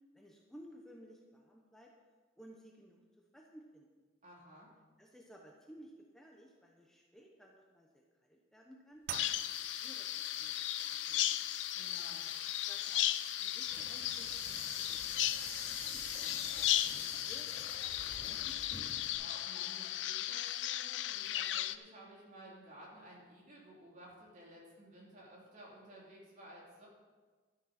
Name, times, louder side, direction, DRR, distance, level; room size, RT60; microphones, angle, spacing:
voice 1, 0.1-1.9 2.4-3.9 5.0-9.0 9.3-11.5 12.6-13.1 13.4-15.5 15.8-17.6 17.9-18.1 18.4-18.7, equal, 5° left, -1 dB, 1.0 m, -58 dB
voice 2, 4.2-4.7 11.7-12.3 19.1-26.9, right 1 dB, 45° right, -4 dB, 3.4 m, -55 dB
sound 1, 9.0-17.6, right 13 dB, 60° right, 0.4 m, -52 dB
Bird vocalization bird call bird song, 9.1-21.8, left 13 dB, 80° left, 0.4 m, -36 dB
Insect, 13.6-19.2, left 3 dB, 55° left, 4.4 m, -47 dB
12.0 x 10.5 x 4.4 m, 1.4 s
head